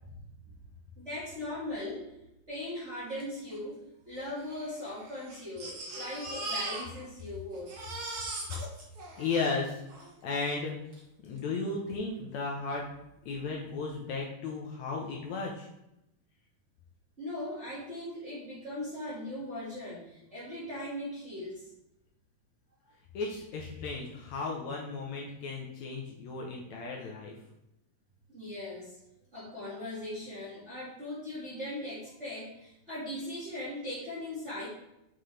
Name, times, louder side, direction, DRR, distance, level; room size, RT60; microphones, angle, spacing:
voice 1, 1.0-2.1 2.5-7.8 17.2-21.7 28.3-29.0 29.3-34.7, left 1 dB, 25° right, -9 dB, 1.6 m, -39 dB
Crying sobbing, 3.2-3.3 3.5-3.6 4.4-7.3 7.5-10.1 10.9-11.0 11.4-11.5, right 2 dB, 50° right, 1.9 m, -40 dB
voice 2, 9.2-9.8 10.2-10.8 11.2-12.8 13.3-15.7 23.1-27.4, left 4 dB, 70° left, -2 dB, 1.9 m, -35 dB
6.8 x 5.8 x 3.3 m, 0.86 s
omnidirectional pair, 3.8 m